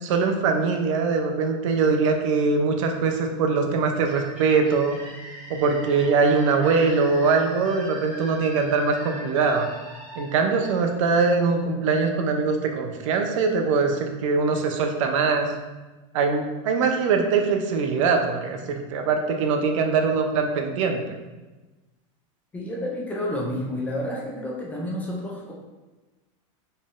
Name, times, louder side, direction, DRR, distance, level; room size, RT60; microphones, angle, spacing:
voice 1, 0.0-5.0 5.5-9.7 10.2-15.5 16.1-21.0, right 4 dB, 70° right, 4 dB, 0.5 m, -22 dB
sound 1, 4.1-11.6, equal, 5° right, 1.4 m, -41 dB
voice 2, 22.5-25.5, left 1 dB, 10° left, -3 dB, 0.3 m, -30 dB
4.0 x 3.7 x 2.4 m, 1.2 s
supercardioid pair, 175°, 17 cm